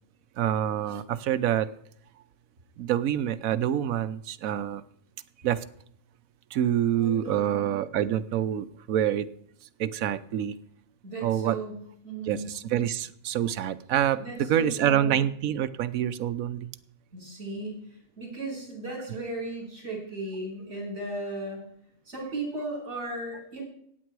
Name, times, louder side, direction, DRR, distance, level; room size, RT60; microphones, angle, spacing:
voice 1, 0.4-1.7 2.8-4.8 5.4-5.6 6.5-9.3 9.8-10.6 11.2-11.6 12.3-14.2 14.5-16.7, right 10 dB, 90° right, 15 dB, 1.2 m, -26 dB
voice 2, 6.9-7.7 11.0-12.5 14.2-15.2 17.1-21.7 22.1-23.6, right 2 dB, 60° right, -1 dB, 6.1 m, -36 dB
15.0 x 9.4 x 4.7 m, 0.70 s
omnidirectional pair, 1.4 m